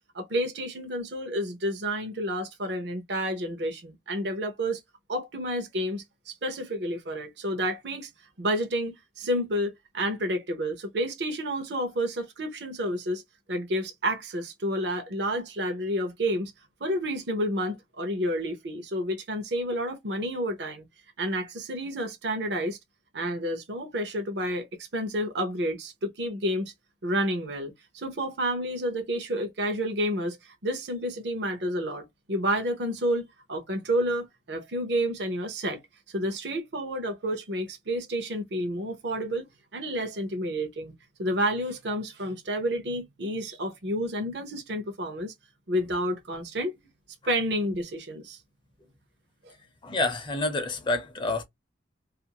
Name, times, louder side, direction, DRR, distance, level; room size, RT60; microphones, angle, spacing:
voice 1, 0.1-4.8 5.1-8.1 8.4-13.2 13.5-16.5 16.8-20.8 21.2-22.8 23.1-26.7 27.0-35.8 36.1-39.5 39.7-40.9 41.2-45.3 45.7-46.8 47.3-48.4 49.4-49.5, equal, 60° right, 0.7 m, -30 dB
voice 2, 49.8-51.4, left 2 dB, 25° left, 0.6 m, -28 dB
2.5 x 2.4 x 2.8 m
head